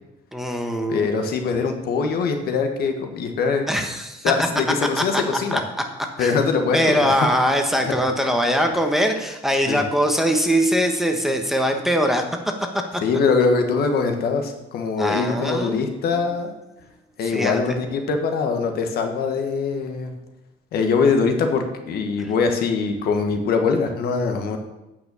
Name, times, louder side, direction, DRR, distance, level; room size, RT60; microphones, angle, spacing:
voice 1, 0.3-1.1 3.7-4.5 5.0-5.2 5.5-5.6 6.2-6.3 6.7-12.2 12.9-13.0 15.0-15.8 16.1-16.2 17.3-17.6, equal, ahead, 3 dB, 1.2 m, -22 dB
voice 2, 0.9-3.6 4.2-5.6 6.2-7.3 7.8-7.9 9.7-9.8 13.0-16.5 17.2-20.1 20.7-24.6, left 5 dB, 70° left, 5 dB, 1.4 m, -22 dB
9.1 x 5.7 x 6.9 m, 0.97 s
cardioid pair, 110°, 17 cm